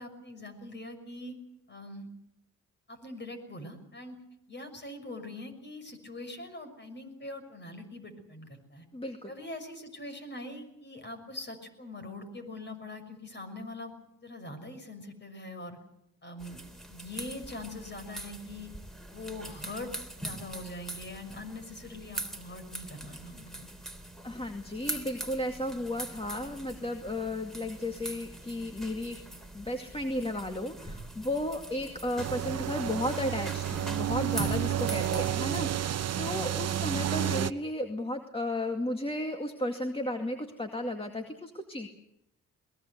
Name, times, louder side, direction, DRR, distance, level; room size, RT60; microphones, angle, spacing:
voice 1, 0.0-1.4 1.7-2.1 2.9-4.2 4.5-8.9 9.3-13.9 14.2-15.8 16.2-16.6 16.9-18.7 19.1-19.9 20.2-23.7, left 2 dB, 35° left, 7 dB, 6.1 m, -43 dB
voice 2, 8.9-9.3 24.2-29.2 29.5-41.9, left 1 dB, 15° left, 4 dB, 2.2 m, -34 dB
sound 1, 16.4-35.6, right 1 dB, ahead, 3.5 m, -43 dB
sound 2, 32.2-37.5, right 11 dB, 50° right, 0.9 m, -31 dB
22.0 x 20.5 x 8.0 m, 0.81 s
cardioid pair, 80°, 32 cm